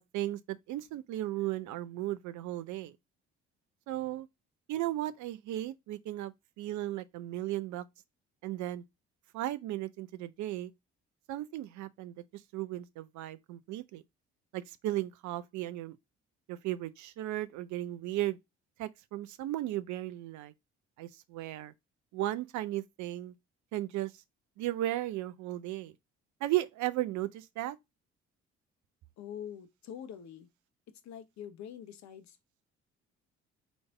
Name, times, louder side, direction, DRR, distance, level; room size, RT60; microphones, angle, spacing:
voice 1, 0.0-2.9 3.9-4.3 4.7-7.8 8.4-8.8 9.3-10.7 11.3-12.2 12.5-14.0 14.5-16.0 16.5-18.4 18.8-20.5 21.0-21.7 22.1-23.3 23.7-24.1 24.6-25.9 26.4-27.8, right 15 dB, 55° right, 0.6 m, -35 dB
voice 2, 29.2-30.5 31.0-32.4, left 9 dB, 55° left, 1.0 m, -45 dB
4.0 x 3.4 x 3.7 m
figure-of-eight pair, 45°, 34 cm